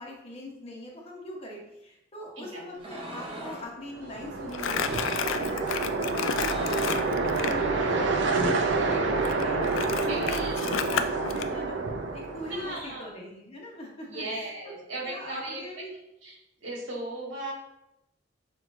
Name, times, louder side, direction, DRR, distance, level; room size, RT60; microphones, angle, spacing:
voice 1, 0.0-5.0 5.3-11.8 12.1-14.7 15.0-15.9, left 1 dB, 30° left, -1 dB, 1.0 m, -41 dB
voice 2, 2.4-2.9 8.6-9.2 10.1-10.6 12.5-13.1 14.1-15.6 16.2-16.3 16.6-17.5, right 2 dB, 85° right, -2 dB, 1.5 m, -37 dB
sound 1, 2.7-3.7 4.6-5.5 6.1-7.1, right 1 dB, 30° right, 0.7 m, -40 dB
sound 2, 3.9-12.9, right 3 dB, 70° right, 0.5 m, -28 dB
Crumpling crinkling, 4.5-7.6 9.2-11.5, left 7 dB, 80° left, 0.3 m, -31 dB
6.1 x 3.2 x 2.6 m, 0.88 s
head